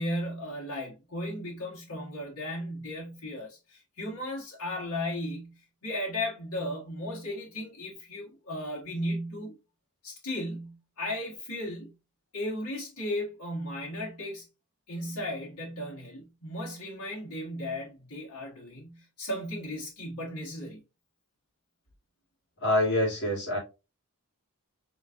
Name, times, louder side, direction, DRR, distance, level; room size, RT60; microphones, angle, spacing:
voice 1, 0.0-9.5 10.0-11.9 12.3-14.4 14.9-20.8, left 1 dB, 90° left, 1.6 m, -35 dB
voice 2, 22.6-23.6, left 1 dB, 55° left, 2.8 m, -25 dB
4.4 x 4.0 x 2.5 m
head